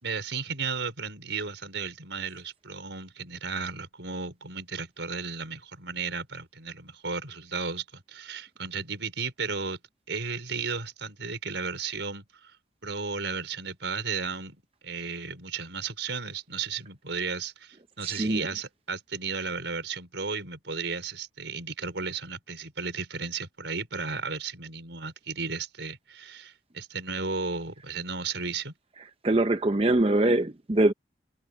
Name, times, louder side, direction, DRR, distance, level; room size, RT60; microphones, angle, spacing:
voice 1, 0.0-9.8 10.1-12.5 12.8-14.6 14.8-28.7, right 5 dB, 80° right, 4.9 m, -34 dB
voice 2, 18.0-18.4 29.2-30.9, right 2 dB, 30° right, 0.7 m, -23 dB
head